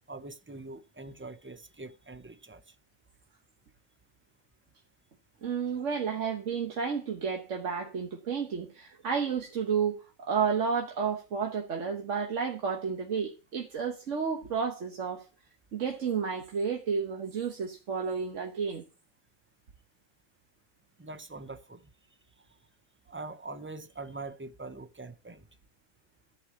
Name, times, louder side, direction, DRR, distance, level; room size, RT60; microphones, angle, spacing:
voice 1, 0.1-2.7 6.0-6.1 21.0-21.8 23.1-25.4, right 3 dB, 15° right, 0.4 m, -43 dB
voice 2, 5.4-15.2 15.7-18.8, right 6 dB, 65° right, 1.4 m, -31 dB
13.5 x 4.8 x 7.2 m
omnidirectional pair, 1.4 m